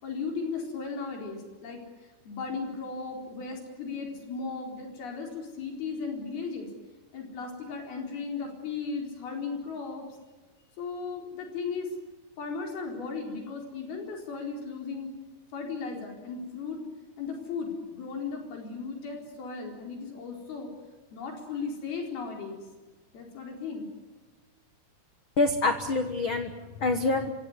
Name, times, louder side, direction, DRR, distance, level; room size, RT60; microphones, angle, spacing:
voice 1, 0.0-1.8 2.3-6.7 7.1-10.1 10.8-11.9 12.4-15.1 15.5-16.8 17.2-20.7 21.1-22.6 23.1-23.9, left 4 dB, 65° left, 2 dB, 6.1 m, -36 dB
voice 2, 25.4-27.3, left 3 dB, 85° left, 7 dB, 1.1 m, -26 dB
25.5 x 17.5 x 9.6 m, 1.3 s
omnidirectional pair, 4.6 m